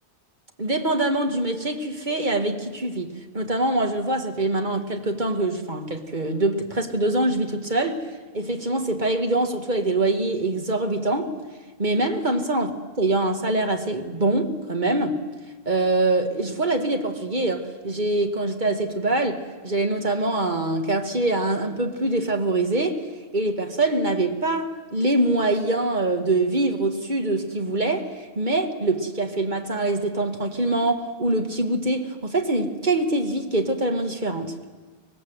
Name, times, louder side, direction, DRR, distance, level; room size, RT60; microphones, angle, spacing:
voice 1, 0.6-8.1 8.3-11.3 11.8-12.7 13.0-15.2 15.7-23.0 23.3-34.5, right 2 dB, 45° right, 1.8 m, -24 dB
24.5 x 20.0 x 7.9 m
omnidirectional pair, 1.1 m